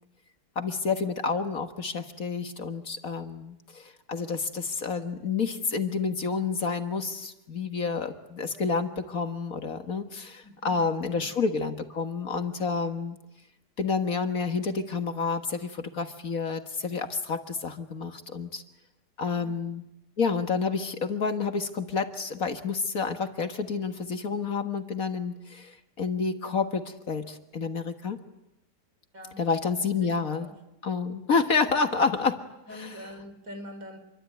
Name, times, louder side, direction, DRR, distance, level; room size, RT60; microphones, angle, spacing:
voice 1, 0.6-13.2 13.8-18.6 19.2-19.8 20.2-28.2 29.4-30.5 30.8-32.4 32.8-32.9, left 5 dB, 55° left, 7 dB, 1.9 m, -29 dB
voice 2, 10.4-11.3 19.3-19.6 29.1-29.4 29.8-30.5 32.7-34.0, left 1 dB, 55° right, 6 dB, 5.4 m, -45 dB
27.5 x 23.5 x 9.3 m, 0.86 s
omnidirectional pair, 1.8 m